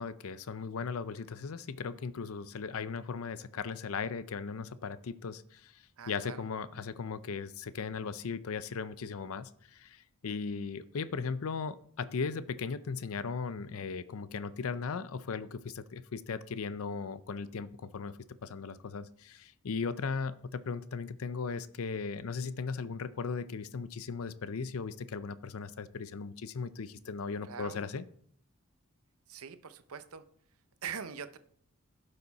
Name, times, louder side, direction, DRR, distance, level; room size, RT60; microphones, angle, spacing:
voice 1, 0.0-28.0, left 5 dB, 70° left, 15 dB, 0.5 m, -37 dB
voice 2, 6.0-6.4 27.4-27.8 29.3-30.2 30.8-31.4, right 7 dB, 75° right, 11 dB, 0.7 m, -43 dB
11.5 x 6.7 x 4.1 m, 0.64 s
head